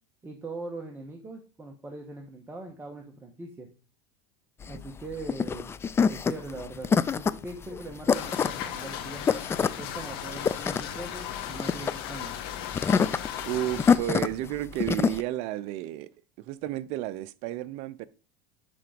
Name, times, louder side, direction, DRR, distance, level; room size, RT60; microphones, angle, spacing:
voice 1, 0.2-3.7 4.6-5.7 6.1-6.9 7.2-9.3 9.8-12.3, right 2 dB, 15° right, 1.4 m, -41 dB
sound 1, 4.6-15.2, left 6 dB, 20° left, 0.4 m, -27 dB
sound 2, 8.1-14.0, left 10 dB, 70° left, 1.7 m, -37 dB
voice 2, 13.5-16.1 16.4-18.1, right 14 dB, 55° right, 0.6 m, -32 dB
11.0 x 3.9 x 5.2 m
supercardioid pair, 115°, 13 cm